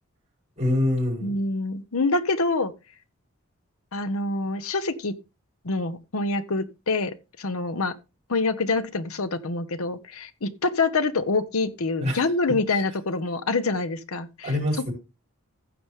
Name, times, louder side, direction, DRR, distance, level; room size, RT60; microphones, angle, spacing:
voice 1, 0.6-1.3 12.0-12.8 14.4-14.9, left 1 dB, 30° right, 5.8 m, -26 dB
voice 2, 1.2-2.7 3.9-5.2 5.6-7.9 8.3-14.5, left 3 dB, 80° left, 0.9 m, -26 dB
15.0 x 6.0 x 3.6 m
head